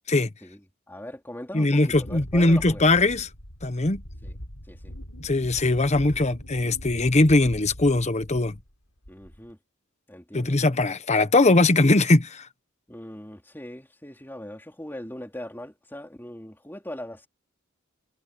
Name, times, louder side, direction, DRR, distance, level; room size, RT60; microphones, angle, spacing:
voice 1, 0.4-2.8 4.2-4.4 4.7-4.9 9.1-9.6 10.1-10.6 12.9-17.3, left 1 dB, 10° left, 3.3 m, -40 dB
voice 2, 1.5-3.3 3.6-4.0 5.2-8.6 10.3-12.5, left 2 dB, 30° left, 1.0 m, -20 dB
Wind, 1.9-8.7 9.0-9.5, equal, 90° left, 7.4 m, -41 dB
head